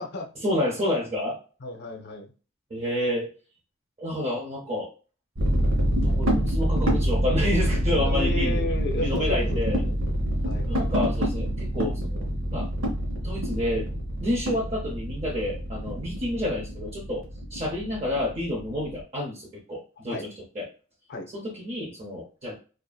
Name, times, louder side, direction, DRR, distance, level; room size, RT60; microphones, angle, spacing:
voice 1, 0.4-1.4 2.7-3.3 4.0-4.9 6.0-8.7 9.0-9.8 10.7-12.7 13.2-13.9 14.2-17.2 17.5-20.7 21.3-22.6, left 1 dB, 30° right, -4 dB, 0.7 m, -29 dB
voice 2, 1.6-2.3 8.0-10.0 10.4-11.0 20.1-20.3 21.1-21.3, left 2 dB, 55° left, 3 dB, 0.6 m, -33 dB
sound 1, 5.4-19.0, equal, 90° right, 0.9 m, -26 dB
2.7 x 2.5 x 2.2 m, 0.36 s
head